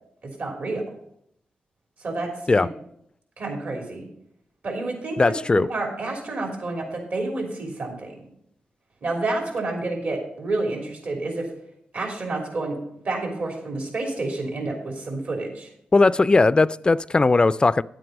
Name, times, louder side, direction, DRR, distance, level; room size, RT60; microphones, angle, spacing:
voice 1, 0.2-0.8 2.0-2.7 3.4-4.1 4.6-8.1 9.0-11.5 11.9-12.8 13.0-15.7, right 2 dB, 65° right, 3.2 m, -29 dB
voice 2, 5.2-5.7 15.9-17.8, left 3 dB, 30° left, 0.3 m, -18 dB
11.0 x 7.8 x 5.2 m
cardioid pair, 65°, 3 cm